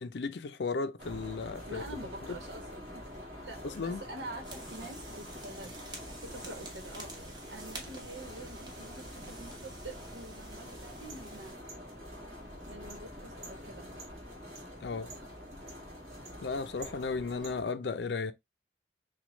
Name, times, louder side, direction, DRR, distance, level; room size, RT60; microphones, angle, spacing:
voice 1, 0.0-1.8 3.6-4.0 14.8-15.1 16.4-18.3, left 4 dB, 75° left, 0.5 m, -35 dB
sound 1, 1.0-17.6, equal, 40° right, 2.2 m, -46 dB
voice 2, 1.7-2.6 3.4-7.1 7.5-11.7 12.7-13.9, right 2 dB, 85° right, 1.1 m, -46 dB
sound 2, 4.4-11.5, right 2 dB, 25° right, 1.3 m, -48 dB
6.0 x 2.3 x 3.1 m
head